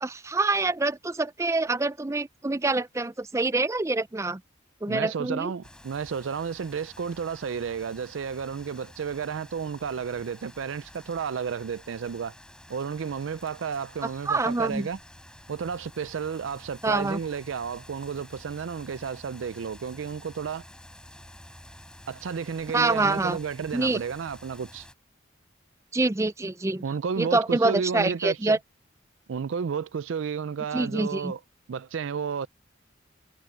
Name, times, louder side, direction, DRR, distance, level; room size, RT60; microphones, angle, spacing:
voice 1, 0.0-4.4 4.8-5.5 14.3-14.9 16.8-17.2 22.7-23.4 23.7-24.0 25.9-26.8 27.2-28.6 30.7-31.3, right 2 dB, 15° right, 0.4 m, -26 dB
voice 2, 4.9-12.3 12.7-15.0 15.5-20.6 22.1-24.9 26.8-28.6 29.3-31.4 31.7-32.5, right 6 dB, 75° right, 0.4 m, -32 dB
sound 1, 5.6-24.9, left 1 dB, 5° left, 6.1 m, -50 dB
head